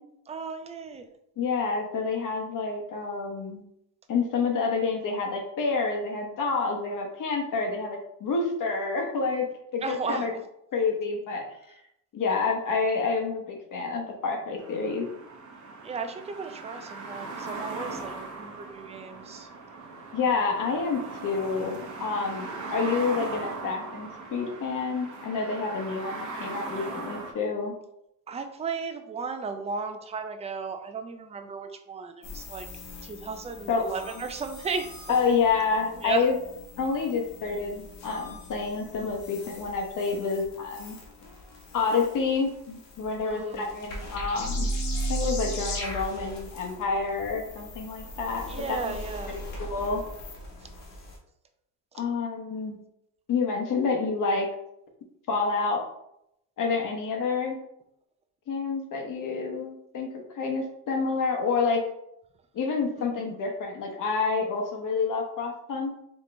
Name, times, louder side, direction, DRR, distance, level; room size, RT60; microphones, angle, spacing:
voice 1, 0.3-1.0 9.8-10.3 15.8-19.5 28.3-32.7 33.0-34.9 36.0-36.2 43.2-43.7 48.5-49.4 63.0-63.1, right 5 dB, 20° right, 7 dB, 0.3 m, -35 dB
voice 2, 1.4-3.6 4.1-9.5 9.7-10.3 10.7-11.8 12.1-15.1 20.1-27.7 33.7-34.2 35.1-36.4 36.8-41.0 41.7-44.7 45.1-50.0 51.9-52.8 53.3-54.5 55.3-55.8 56.6-57.6 58.5-61.8 62.5-66.0, left 4 dB, 50° left, 2 dB, 1.0 m, -28 dB
sound 1, 14.6-27.3, right 3 dB, 45° right, 1.0 m, -39 dB
sound 2, 32.2-51.2, equal, 80° left, 1.4 m, -38 dB
4.2 x 2.9 x 3.3 m, 0.77 s
cardioid pair, 120°, 40 cm